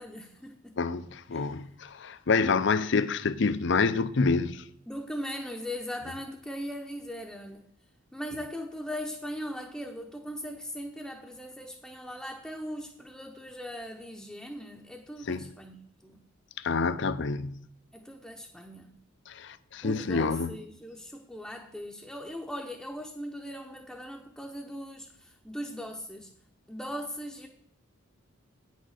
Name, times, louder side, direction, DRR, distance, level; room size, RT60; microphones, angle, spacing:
voice 1, 0.0-0.7 1.3-1.5 4.9-7.7 8.1-16.2 17.9-18.9 19.8-26.3 26.7-27.5, equal, 5° left, 0.6 m, -39 dB
voice 2, 0.8-4.6 15.3-15.4 16.6-17.6 19.3-20.6, left 4 dB, 55° left, 0.5 m, -27 dB
9.1 x 6.3 x 6.4 m
head